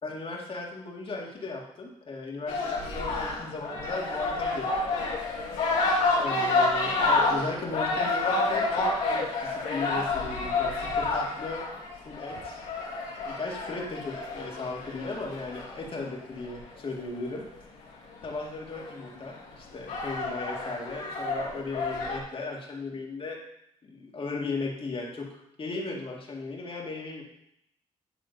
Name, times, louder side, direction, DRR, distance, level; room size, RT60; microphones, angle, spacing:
voice 1, 0.0-5.1 6.2-11.6 12.0-12.6 13.2-17.4 18.2-23.4 23.8-27.2, left 3 dB, 45° left, -1 dB, 2.1 m, -36 dB
sound 1, 2.5-16.7 18.2-18.3 18.7-19.2 19.7-22.2, left 3 dB, 85° left, 2.1 m, -29 dB
10.5 x 3.7 x 5.3 m, 0.77 s
supercardioid pair, 65°, 13 cm